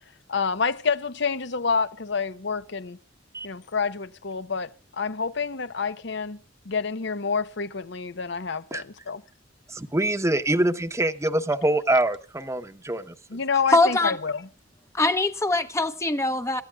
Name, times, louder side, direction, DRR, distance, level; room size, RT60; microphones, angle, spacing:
voice 1, 0.3-3.0 3.4-6.4 6.6-9.2 13.3-14.5, left 5 dB, 65° left, 0.9 m, -28 dB
voice 2, 9.7-13.1, right 1 dB, 15° right, 1.0 m, -24 dB
voice 3, 13.7-14.2 14.9-16.6, left 2 dB, 15° left, 0.8 m, -22 dB
27.0 x 13.5 x 2.4 m
head